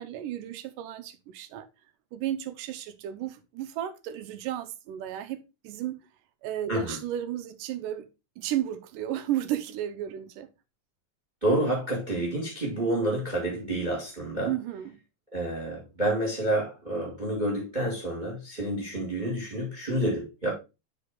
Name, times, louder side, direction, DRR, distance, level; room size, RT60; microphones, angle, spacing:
voice 1, 0.0-1.7 2.1-6.0 6.4-8.1 8.4-10.5 14.5-15.0, right 12 dB, 85° right, 2.3 m, -33 dB
voice 2, 11.4-14.5 15.3-20.5, right 1 dB, 15° right, 2.1 m, -29 dB
6.8 x 5.1 x 3.6 m
omnidirectional pair, 3.8 m